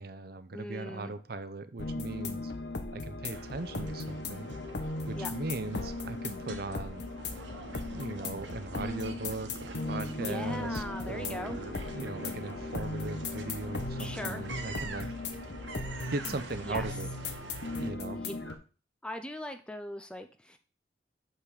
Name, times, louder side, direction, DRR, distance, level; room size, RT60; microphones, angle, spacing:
voice 1, 0.0-2.5 2.9-4.5 5.1-7.1 7.9-15.1 16.1-17.1 17.7-18.2, right 3 dB, 55° right, 11 dB, 0.6 m, -39 dB
voice 2, 0.5-1.1 5.1-5.3 10.2-11.6 14.0-14.4 16.6-16.9 18.1-18.6 19.0-20.6, left 1 dB, 5° left, 8 dB, 0.5 m, -40 dB
sound 1, 1.8-18.5, left 3 dB, 65° left, 1.0 m, -37 dB
sound 2, 3.3-17.9, right 3 dB, 75° right, 1.1 m, -46 dB
6.7 x 5.7 x 4.9 m, 0.36 s
head